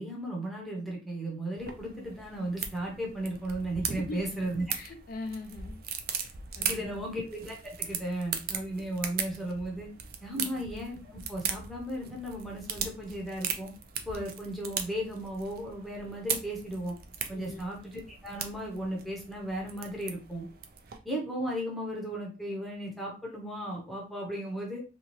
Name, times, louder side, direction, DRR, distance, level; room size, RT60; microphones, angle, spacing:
voice 1, 0.0-4.6 6.7-9.9 10.2-13.7 14.1-17.0 17.3-20.5 21.0-24.8, right 1 dB, ahead, -3 dB, 0.7 m, -35 dB
sound 1, 1.6-21.0, right 7 dB, 55° right, 0.4 m, -39 dB
voice 2, 4.7-5.8 6.2-6.9 10.3-10.6 17.3-17.7, left 2 dB, 50° left, 5 dB, 0.4 m, -41 dB
2.7 x 2.3 x 3.0 m, 0.33 s
head